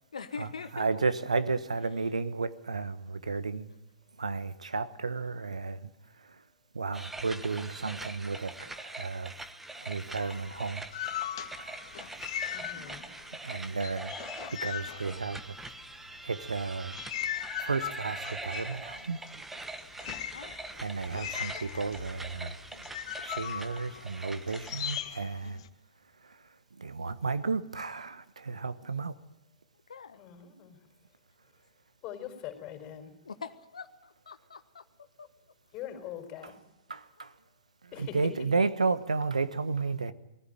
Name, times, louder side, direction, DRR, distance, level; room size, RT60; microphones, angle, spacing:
voice 1, 0.1-0.9 12.7-13.0 20.3-20.6 24.5-24.6 25.4-25.6 29.9-30.2 33.2-35.3 37.2-37.3, left 5 dB, 70° left, 1.3 m, -44 dB
voice 2, 0.7-3.7 4.2-5.9 6.2-6.4 6.7-9.3 9.7-10.8 11.6-11.8 13.4-15.5 16.2-17.0 17.6-19.2 20.8-22.8 23.2-25.6 26.2-26.4 26.7-29.1 36.9-37.3 38.1-40.1, right 4 dB, 75° right, 1.1 m, -33 dB
sound 1, 6.9-25.0, right 2 dB, 5° right, 1.1 m, -43 dB
sound 2, 10.2-13.3 13.5-15.8 16.4-25.7, left 10 dB, 50° left, 1.5 m, -39 dB
voice 3, 12.5-13.1 30.1-31.1 31.4-31.6 32.0-33.1 35.7-36.6 37.9-38.3, left 10 dB, 30° left, 4.6 m, -43 dB
21.0 x 15.0 x 9.2 m
figure-of-eight pair, 115°, 4 cm